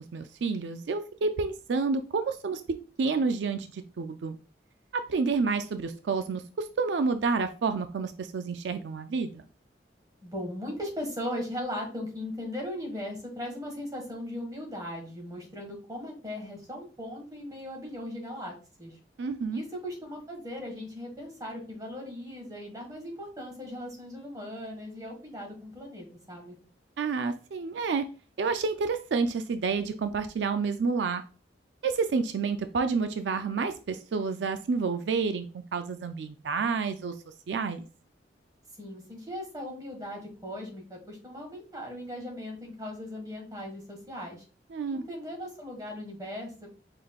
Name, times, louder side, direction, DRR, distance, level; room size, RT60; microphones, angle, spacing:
voice 1, 0.1-2.6 3.0-4.4 4.9-9.4 19.2-19.6 27.0-28.0 28.4-31.2 31.8-35.4 35.7-37.1 37.5-37.8 44.7-45.0, right 4 dB, 85° right, 9 dB, 0.4 m, -29 dB
voice 2, 10.2-18.9 19.5-26.6 38.8-44.4 44.8-46.7, left 1 dB, 20° right, 1 dB, 1.5 m, -38 dB
5.0 x 3.8 x 2.3 m, 0.36 s
head